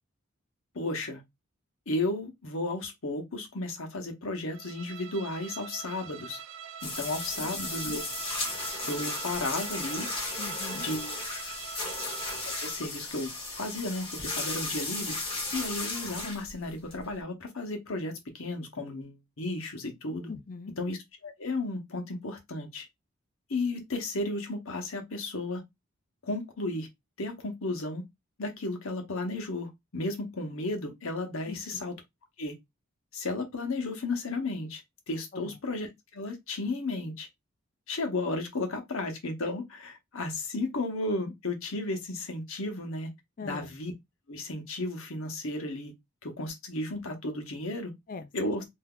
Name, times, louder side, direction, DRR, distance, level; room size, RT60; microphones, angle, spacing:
voice 1, 0.7-1.2 1.9-6.4 6.8-8.0 8.8-10.1 10.7-11.2 12.4-13.3 13.6-15.2 15.5-20.3 20.8-21.0 21.2-22.9 23.5-25.6 26.2-26.9 27.2-28.0 28.4-31.9 32.4-32.5 33.1-34.8 35.1-37.3 37.9-43.1 43.4-43.9 44.3-45.9 46.2-47.9 48.3-48.6, left 2 dB, 75° left, 1.0 m, -34 dB
Bowed string instrument, 4.5-12.9, right 7 dB, 65° right, 0.3 m, -43 dB
sound 1, 6.8-17.2, left 2 dB, 25° left, 1.0 m, -35 dB
voice 2, 10.4-10.9 20.3-20.7 31.5-31.8 35.3-35.6 43.4-43.8 48.1-48.7, left 4 dB, 40° left, 0.4 m, -41 dB
3.6 x 2.7 x 2.3 m
head